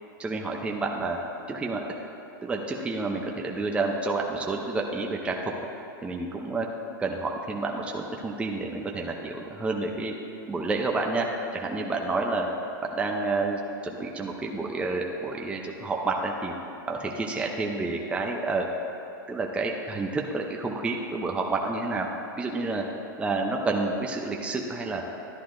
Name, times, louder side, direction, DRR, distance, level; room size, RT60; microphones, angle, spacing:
voice 1, 0.2-1.2 1.5-1.8 2.4-5.5 6.0-6.7 7.0-10.1 10.5-11.3 11.5-12.5 12.8-16.5 16.9-18.7 19.3-22.1 22.4-22.8 23.2-25.0, right 3 dB, 10° right, 0 dB, 0.6 m, -29 dB
11.5 x 9.9 x 2.6 m, 2.9 s
supercardioid pair, 135°, 11 cm